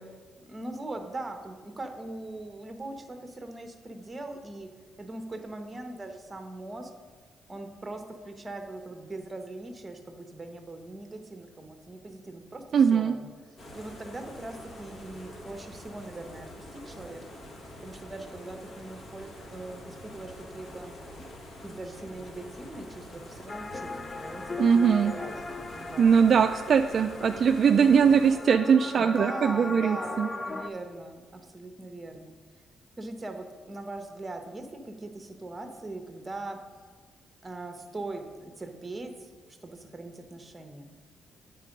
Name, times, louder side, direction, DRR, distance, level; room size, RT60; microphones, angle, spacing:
voice 1, 0.5-4.7 5.0-6.9 7.5-13.3 13.7-17.2 17.8-20.9 21.6-26.5 29.0-32.3 33.0-36.6 37.4-40.9, right 2 dB, 20° right, 6 dB, 0.9 m, -41 dB
voice 2, 12.7-13.1 24.6-25.1 26.0-30.3, right 7 dB, 55° right, 6 dB, 0.3 m, -21 dB
sound 1, 13.6-28.4, left 1 dB, 60° left, 1.4 m, -46 dB
sound 2, 23.5-30.7, left 3 dB, 30° left, 0.5 m, -38 dB
8.3 x 4.5 x 5.1 m, 1.6 s
cardioid pair, 90°, 0 cm